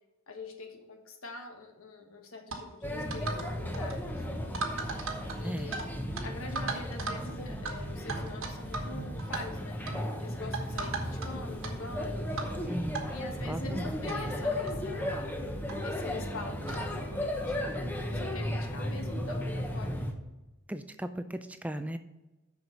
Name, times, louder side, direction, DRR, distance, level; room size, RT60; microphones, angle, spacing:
voice 1, 0.3-4.7 5.3-5.8 6.2-9.8 10.2-12.3 13.1-15.3 15.8-17.8 18.1-20.0, left 3 dB, 75° left, 4 dB, 1.3 m, -44 dB
sound 1, 2.5-2.7 3.1-3.5 3.7-4.0 4.5-5.9 6.2-6.3 6.6-7.2 7.7-7.8 8.1-8.9 9.2-9.4 9.9-10.0 10.5-11.3 11.6-11.7 12.4-12.6 12.9-13.0 13.8-13.9 14.1-14.2 14.7-14.8 15.7-15.8 16.7-16.9, right 3 dB, 70° right, 1.3 m, -36 dB
Male speech man speaking / Child speech kid speaking / Chatter, 2.8-20.1, left 1 dB, 10° left, 0.8 m, -35 dB
voice 2, 12.7-13.1 13.4-14.4 20.7-22.0, right 1 dB, 5° right, 9 dB, 0.4 m, -37 dB
7.0 x 6.2 x 5.2 m, 1.1 s
head